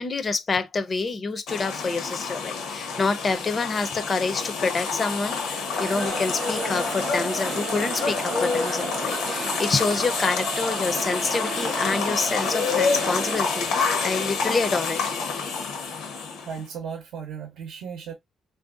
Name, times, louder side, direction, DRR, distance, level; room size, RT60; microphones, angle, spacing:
voice 1, 0.0-15.0, left 4 dB, 40° left, 0.5 m, -27 dB
sound 1, 1.5-16.6, left 5 dB, 85° left, 0.8 m, -28 dB
Crowd, 5.7-13.8, right 6 dB, 50° right, 0.4 m, -34 dB
voice 2, 16.4-18.1, right 7 dB, 80° right, 0.7 m, -36 dB
3.3 x 2.5 x 2.4 m
cardioid pair, 90°, 0 cm